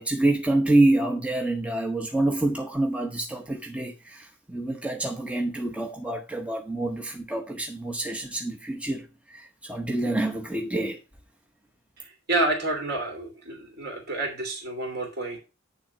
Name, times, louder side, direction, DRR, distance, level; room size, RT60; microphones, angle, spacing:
voice 1, 0.0-11.0, right 2 dB, 5° right, 0.8 m, -27 dB
voice 2, 12.3-15.4, right 2 dB, 50° right, 2.8 m, -29 dB
9.2 x 3.7 x 5.7 m
head